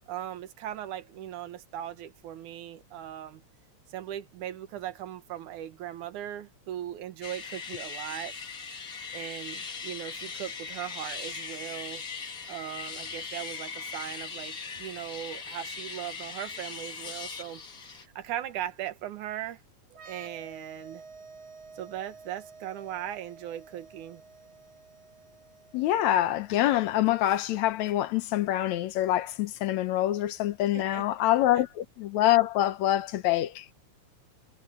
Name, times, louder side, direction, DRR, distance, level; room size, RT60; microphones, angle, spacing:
voice 1, 0.1-3.4 3.9-8.3 9.1-12.0 12.5-17.6 18.2-19.6 20.0-21.0 21.7-24.2 30.7-31.1, right 11 dB, 85° right, 2.7 m, -38 dB
sound 1, 7.2-18.1, left 5 dB, 35° left, 1.8 m, -39 dB
sound 2, 19.9-27.4, right 4 dB, 65° right, 3.6 m, -51 dB
voice 2, 25.7-33.7, left 13 dB, 75° left, 2.1 m, -25 dB
omnidirectional pair, 3.4 m